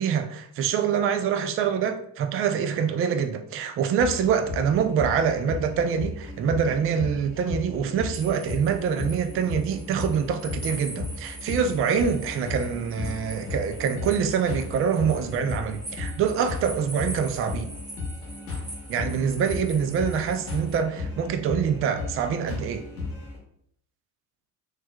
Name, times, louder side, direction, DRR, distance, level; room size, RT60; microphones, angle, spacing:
voice 1, 0.0-17.7 18.9-22.8, right 7 dB, 30° right, 0.4 m, -25 dB
sound 1, 4.0-23.4, left 3 dB, 85° left, 1.1 m, -35 dB
sound 2, 8.1-20.8, right 1 dB, 10° right, 1.2 m, -44 dB
4.3 x 3.2 x 2.2 m
figure-of-eight pair, 55°, 46 cm